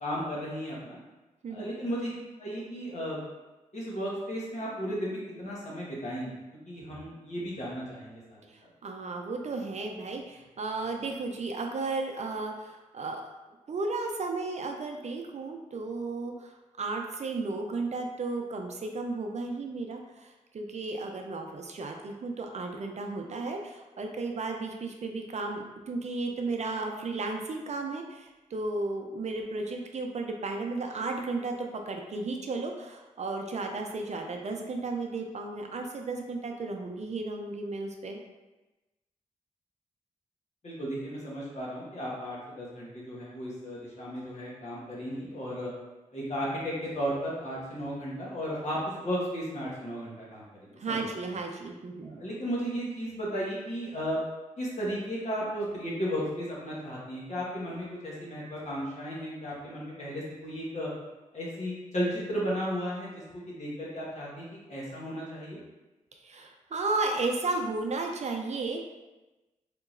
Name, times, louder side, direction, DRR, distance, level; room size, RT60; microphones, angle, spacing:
voice 1, 0.0-1.0 1.5-2.1 2.4-3.2 3.7-6.4 6.7-8.4 40.6-45.7 46.1-51.0 52.0-54.2 54.6-60.9 61.3-65.6, equal, 55° left, -6 dB, 1.3 m, -34 dB
voice 2, 8.5-13.3 13.7-38.2 50.8-52.2 66.2-68.8, right 3 dB, 55° right, 3 dB, 0.5 m, -34 dB
3.6 x 2.8 x 2.5 m, 1.1 s
cardioid pair, 45°, 14 cm